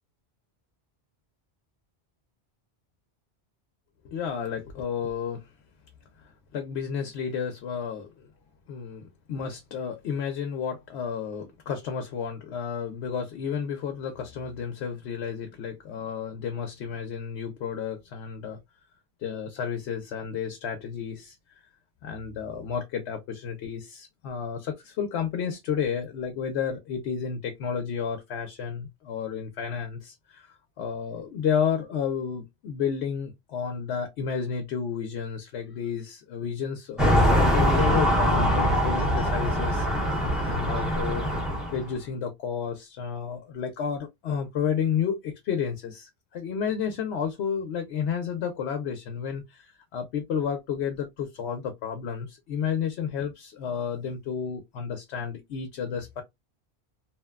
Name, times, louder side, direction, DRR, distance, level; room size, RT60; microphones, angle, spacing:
voice 1, 4.0-5.5 6.2-8.3 8.7-18.6 19.2-21.4 22.0-41.3 41.7-56.2, left 7 dB, 90° left, 0.9 m, -31 dB
sound 1, 37.0-41.8, equal, ahead, 0.6 m, -23 dB
2.8 x 2.1 x 2.2 m
omnidirectional pair, 1.1 m